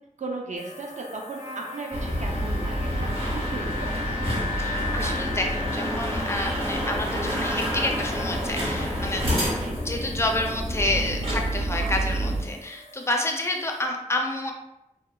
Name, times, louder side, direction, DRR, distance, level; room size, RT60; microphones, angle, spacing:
voice 1, 0.2-4.2 9.4-9.7, right 3 dB, 65° right, 0 dB, 0.5 m, -36 dB
sound 1, 0.6-13.8, left 3 dB, 70° left, 0.6 m, -39 dB
Bowed string instrument, 1.3-9.2, left 1 dB, 85° left, 0.8 m, -44 dB
sound 2, 1.9-12.4, equal, 45° right, 0.9 m, -28 dB
voice 2, 4.6-9.2 9.8-14.5, left 1 dB, 20° left, 2 dB, 0.4 m, -29 dB
2.8 x 2.1 x 2.2 m, 0.86 s
wide cardioid pair, 70°, 14 cm